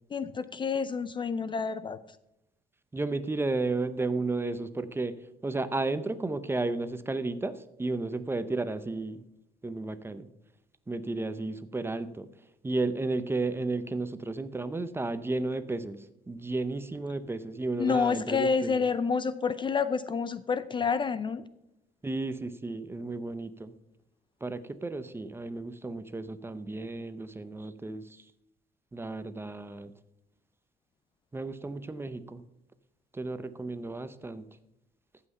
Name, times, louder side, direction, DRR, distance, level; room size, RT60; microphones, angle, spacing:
voice 1, 0.1-2.0 17.8-21.4, left 5 dB, 30° left, 14 dB, 0.5 m, -28 dB
voice 2, 2.9-9.2 9.6-10.3 10.9-12.3 12.6-18.8 22.0-23.7 24.4-28.2 28.9-29.9 31.3-32.4 33.1-34.5, right 3 dB, 15° right, 13 dB, 0.6 m, -33 dB
14.5 x 5.8 x 5.4 m, 0.85 s
cardioid pair, 110°, 17 cm